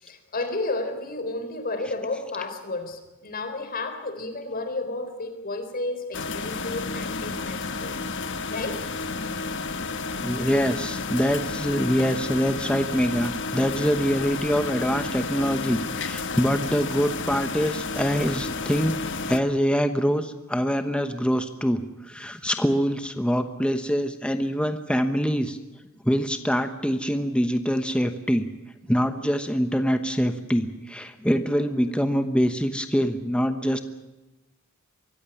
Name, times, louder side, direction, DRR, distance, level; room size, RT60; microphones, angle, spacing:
voice 1, 0.0-8.8, left 2 dB, 45° left, 7 dB, 4.0 m, -32 dB
sound 1, 6.1-19.4, left 4 dB, 60° left, 1.3 m, -31 dB
voice 2, 10.2-19.0 19.2-25.6 26.0-28.5 28.9-33.8, equal, 5° left, 8 dB, 1.0 m, -24 dB
24.0 x 15.0 x 9.9 m, 1.1 s
head